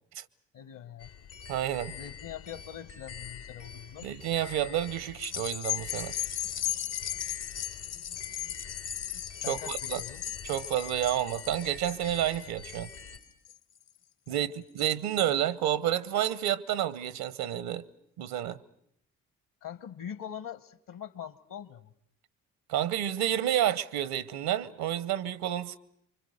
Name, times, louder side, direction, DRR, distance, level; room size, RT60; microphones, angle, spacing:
voice 1, 0.5-1.1 1.9-4.1 9.4-10.2 14.3-14.5 14.8-15.0 15.3-15.4 19.6-21.9, left 9 dB, 60° left, 1.3 m, -43 dB
sound 1, 1.0-13.2, left 7 dB, 80° left, 2.1 m, -46 dB
voice 2, 1.5-2.0 4.0-6.1 9.5-10.0 10.4-12.9 14.3-17.8 18.2-18.6 22.7-25.8, right 11 dB, 70° right, 1.0 m, -30 dB
sound 2, 5.1-13.8 14.3-14.4, left 11 dB, 45° left, 0.9 m, -36 dB
26.5 x 24.5 x 6.5 m
hypercardioid pair, 45°, 38 cm